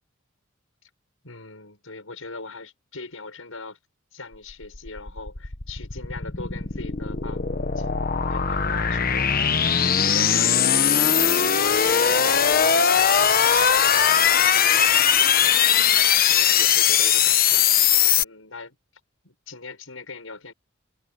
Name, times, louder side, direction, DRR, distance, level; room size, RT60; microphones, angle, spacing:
voice 1, 1.2-3.8 4.1-13.0 13.4-17.7 18.2-18.8 19.2-20.5, left 3 dB, 80° left, 6.2 m, -40 dB
sound 1, 4.5-18.2, left 8 dB, 45° left, 1.2 m, -20 dB
head